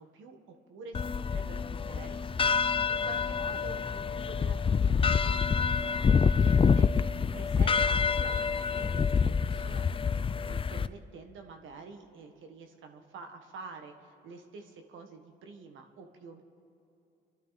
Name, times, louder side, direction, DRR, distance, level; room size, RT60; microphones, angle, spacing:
voice 1, 0.0-10.0 10.4-16.4, right 4 dB, 80° right, 5 dB, 1.7 m, -48 dB
sound 1, 0.9-10.9, left 6 dB, 25° left, 0.5 m, -27 dB
sound 2, 4.3-10.3, left 3 dB, 60° left, 1.7 m, -55 dB
29.5 x 12.0 x 4.1 m, 2.7 s
cardioid pair, 90°, 20 cm